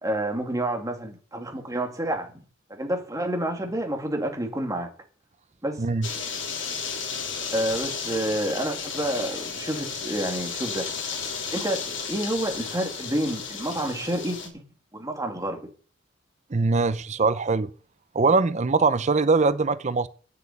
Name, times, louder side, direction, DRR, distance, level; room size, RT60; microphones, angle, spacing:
voice 1, 0.0-2.3 2.7-4.9 5.6-5.8 7.5-10.9 11.5-14.4 14.9-15.6, right 1 dB, 15° right, 2.5 m, -29 dB
sound 1, 6.0-14.5, left 5 dB, 70° left, 3.2 m, -33 dB
voice 2, 16.5-17.7 18.1-20.1, right 4 dB, 35° right, 0.6 m, -22 dB
9.1 x 8.2 x 8.4 m
head